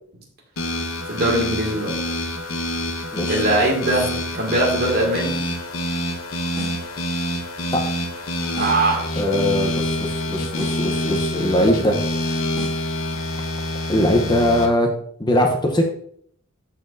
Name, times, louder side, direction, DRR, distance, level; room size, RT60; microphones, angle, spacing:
sound 1, 0.6-14.7, left 1 dB, 85° left, 1.0 m, -26 dB
voice 1, 1.1-1.9 3.3-5.3 8.6-9.1, right 2 dB, 50° right, -1 dB, 2.1 m, -21 dB
voice 2, 3.1-3.4 7.7-7.8 9.2-12.4 13.9-14.9 15.2-15.8, left 1 dB, 20° left, 3 dB, 0.8 m, -21 dB
sound 2, 6.5-6.9 8.6-8.9 10.5-10.9 12.6-12.9, equal, ahead, 2.7 m, -37 dB
12.5 x 4.3 x 2.6 m, 0.62 s
head